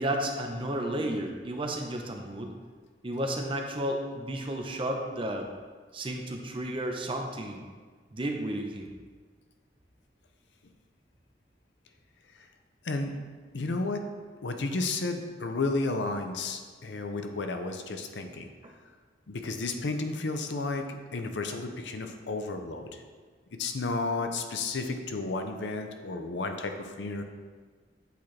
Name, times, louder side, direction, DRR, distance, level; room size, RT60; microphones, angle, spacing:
voice 1, 0.0-2.5 3.0-5.5 5.9-7.7 8.1-8.9 18.6-18.7, right 1 dB, 30° right, 3 dB, 0.6 m, -32 dB
voice 2, 13.5-14.0 14.4-18.5 19.3-23.0 23.6-27.2, left 3 dB, 85° left, 6 dB, 0.6 m, -32 dB
8.2 x 4.3 x 3.2 m, 1.5 s
head